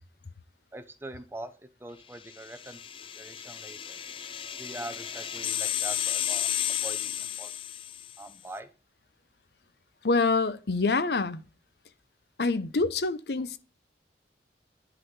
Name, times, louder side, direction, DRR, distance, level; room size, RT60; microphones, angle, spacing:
voice 1, 0.7-1.5 1.8-4.0 4.6-6.5 6.8-7.5 8.2-8.7, right 1 dB, 15° right, 0.7 m, -43 dB
sound 1, 2.3-8.2, left 10 dB, 30° left, 0.4 m, -33 dB
voice 2, 10.0-11.4 12.4-13.6, left 3 dB, 65° left, 0.7 m, -26 dB
11.0 x 4.0 x 4.7 m
head